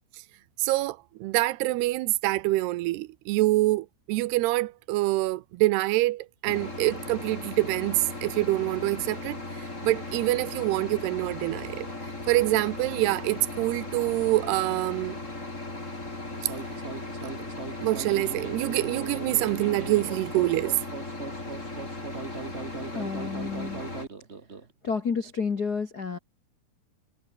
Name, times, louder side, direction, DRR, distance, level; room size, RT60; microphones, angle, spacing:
voice 1, 0.6-9.4 9.8-11.9 12.3-15.2 17.8-20.8, right 18 dB, 85° right, 2.7 m, -26 dB
sound 1, 6.4-24.1, left 2 dB, 15° left, 4.8 m, -37 dB
sound 2, 16.3-24.7, right 4 dB, 50° right, 0.7 m, -39 dB
voice 2, 22.9-23.8 24.8-26.2, left 5 dB, 85° left, 0.8 m, -30 dB
omnidirectional pair, 4.8 m